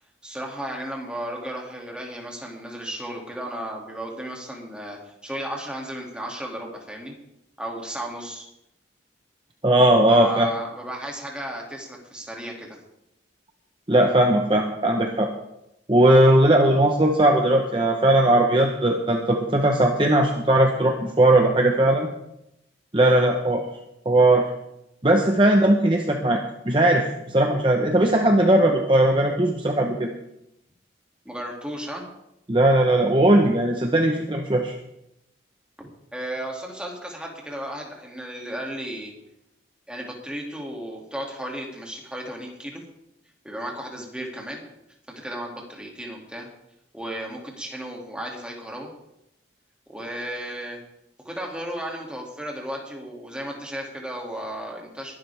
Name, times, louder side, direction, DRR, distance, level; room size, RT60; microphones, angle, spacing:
voice 1, 0.2-7.1 7.6-8.5 10.1-12.8 31.2-32.0 35.8-39.1 39.9-42.8 43.4-44.6 45.1-46.5 46.9-48.9 49.9-50.8 51.2-55.1, right 1 dB, 5° right, -1 dB, 2.4 m, -34 dB
voice 2, 9.6-10.5 13.9-15.3 15.9-22.1 22.9-23.6 24.0-24.5 25.0-30.1 32.5-34.7, right 1 dB, 25° right, 2 dB, 1.0 m, -18 dB
21.5 x 11.5 x 3.5 m, 0.84 s
head